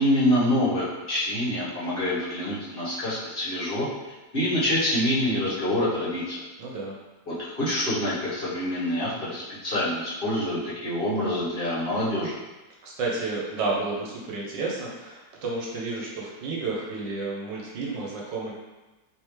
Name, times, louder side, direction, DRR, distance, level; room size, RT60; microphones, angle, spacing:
voice 1, 0.0-3.9 4.3-6.4 7.3-12.3, left 1 dB, 35° left, -10 dB, 1.0 m, -26 dB
voice 2, 6.6-7.0 12.8-18.5, right 3 dB, 75° right, -3 dB, 1.3 m, -31 dB
3.5 x 3.1 x 3.0 m, 1.1 s
omnidirectional pair, 2.0 m